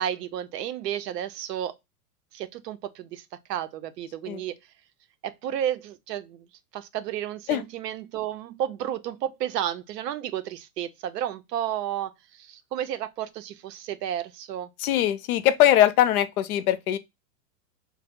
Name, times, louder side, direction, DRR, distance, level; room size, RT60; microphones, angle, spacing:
voice 1, 0.0-1.7 2.3-4.6 5.2-6.5 6.7-14.7, right 10 dB, 85° right, 0.6 m, -32 dB
voice 2, 14.8-17.0, left 12 dB, 65° left, 0.5 m, -21 dB
2.9 x 2.0 x 3.4 m
supercardioid pair, 160°, 47 cm